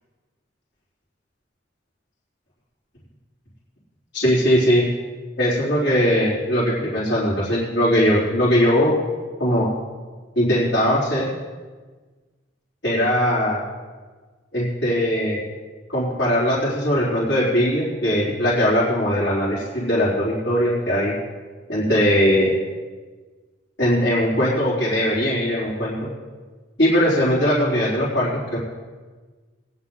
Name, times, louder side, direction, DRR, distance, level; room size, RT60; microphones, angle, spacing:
voice 1, 4.1-4.8 5.4-9.0 9.4-9.7 10.4-11.3 12.8-13.6 14.5-15.4 15.9-21.1 21.7-22.5 23.8-26.1 26.8-28.6, equal, 60° left, -9 dB, 3.8 m, -20 dB
19.5 x 9.7 x 3.9 m, 1.4 s
head